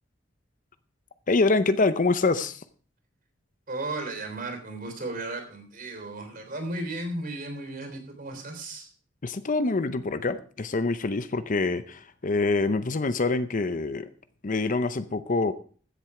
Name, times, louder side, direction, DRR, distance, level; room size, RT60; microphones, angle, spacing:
voice 1, 1.3-2.6 9.2-14.1 14.4-15.5, left 3 dB, 40° left, 0.6 m, -25 dB
voice 2, 3.7-8.9, right 2 dB, 45° right, 3.4 m, -35 dB
15.0 x 7.5 x 4.8 m
head